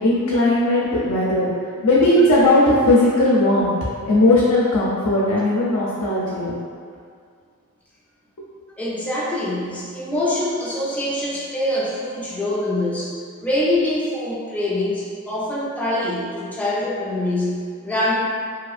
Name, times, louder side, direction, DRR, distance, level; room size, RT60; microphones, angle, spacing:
voice 1, 0.0-1.5 1.8-3.7 4.1-6.5, left 1 dB, 70° left, -6 dB, 0.4 m, -17 dB
voice 2, 8.8-18.1, left 1 dB, 5° left, -6 dB, 0.4 m, -24 dB
2.7 x 2.4 x 2.4 m, 2.2 s
head